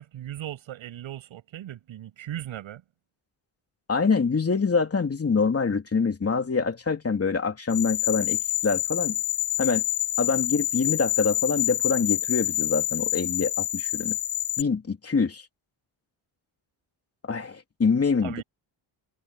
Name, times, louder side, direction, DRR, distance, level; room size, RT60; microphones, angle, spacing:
voice 1, 0.0-2.8 18.2-18.4, right 12 dB, 80° right, 7.7 m, -38 dB
voice 2, 3.9-9.2 9.6-9.8 10.2-14.2 14.6-15.4 17.3-18.3, left 5 dB, 30° left, 3.1 m, -25 dB
sound 1, 7.7-14.6, left 15 dB, 55° left, 2.8 m, -27 dB
cardioid pair, 100°, 47 cm